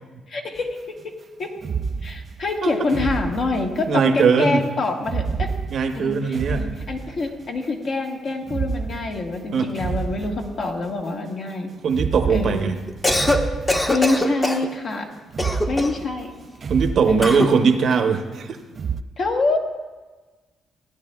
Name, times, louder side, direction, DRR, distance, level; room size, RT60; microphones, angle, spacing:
voice 1, 0.3-0.7 1.0-1.1 1.4-1.5 2.0-5.5 5.9-11.7 12.3-12.7 13.9-15.1 15.7-16.3 17.1-17.4 19.2-19.6, left 3 dB, 55° left, 1 dB, 1.4 m, -25 dB
sound 1, 0.6-0.7 1.6-4.1 5.0-7.5 8.4-10.9 11.9-14.3 15.3-17.8 18.7-19.0, right 5 dB, 45° right, 0.3 m, -30 dB
voice 2, 3.9-4.6 5.7-6.7 9.5-9.7 11.8-12.8 16.7-18.6, right 5 dB, 60° right, 7 dB, 0.8 m, -20 dB
Cough, 12.9-13.4 13.7-14.7 15.4-16.0 17.2-17.5, left 1 dB, 20° left, 0.9 m, -22 dB
16.0 x 9.8 x 2.3 m, 1.3 s
cardioid pair, 90°, 0 cm